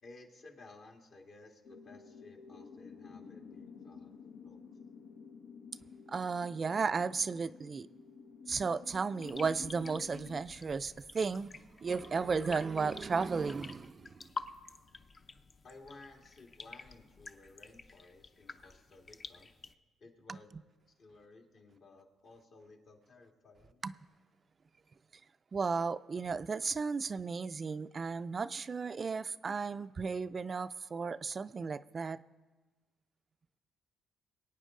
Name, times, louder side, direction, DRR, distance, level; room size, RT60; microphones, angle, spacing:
voice 1, 0.0-4.2 4.4-4.7 15.6-19.5 20.0-20.6 21.0-23.8, left 3 dB, 60° left, 1 dB, 2.0 m, -56 dB
sound 1, 1.6-10.5, left 5 dB, 90° left, 0.9 m, -51 dB
voice 2, 6.1-7.9 8.5-11.5 11.8-14.2 20.3-20.4 23.8-23.9 25.5-32.2, right 5 dB, 40° right, 13 dB, 0.3 m, -34 dB
sound 2, 9.2-19.7, left 4 dB, 40° left, 0.6 m, -49 dB
22.5 x 8.9 x 3.7 m, 1.3 s
cardioid pair, 90°, 0 cm